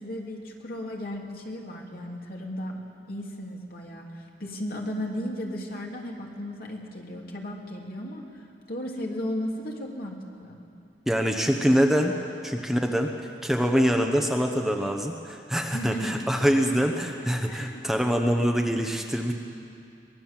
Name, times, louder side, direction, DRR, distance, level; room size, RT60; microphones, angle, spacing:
voice 1, 0.0-2.8 3.1-10.6 15.7-16.2 16.6-16.7 17.4-17.9, equal, 55° left, 0 dB, 2.8 m, -35 dB
voice 2, 11.1-12.2 12.4-13.1 13.4-19.3, equal, ahead, 2 dB, 0.9 m, -24 dB
23.5 x 19.0 x 7.4 m, 2.6 s
head